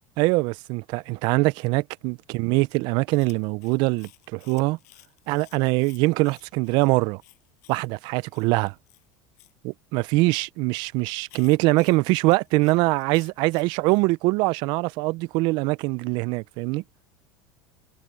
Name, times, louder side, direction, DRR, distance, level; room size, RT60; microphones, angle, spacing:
voice 1, 0.2-4.8 5.3-7.2 7.7-8.7 9.6-16.8, right 23 dB, 60° right, 0.5 m, -23 dB
Chewing mastication, 3.1-9.5 11.3-14.0, left 21 dB, 80° left, 7.3 m, -55 dB
supercardioid pair, 120°, 8 cm